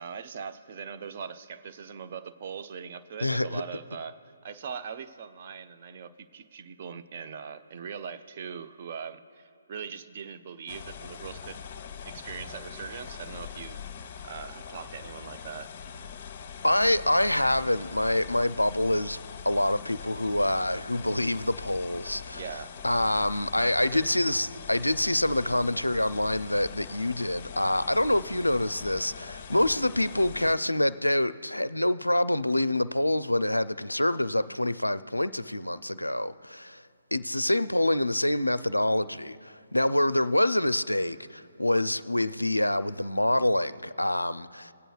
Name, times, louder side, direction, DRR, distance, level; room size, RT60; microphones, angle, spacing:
voice 1, 0.0-11.6 12.0-13.8 14.2-15.7 22.4-22.8 23.9-24.1, right 7 dB, 35° right, 0.5 m, -41 dB
voice 2, 3.2-3.6 16.6-19.2 19.5-22.4 22.8-36.8 37.1-44.7, left 1 dB, 85° left, 0.4 m, -26 dB
sound 1, 10.7-30.6, left 7 dB, 30° left, 0.9 m, -42 dB
18.5 x 9.0 x 2.3 m
figure-of-eight pair, 140°, 0 cm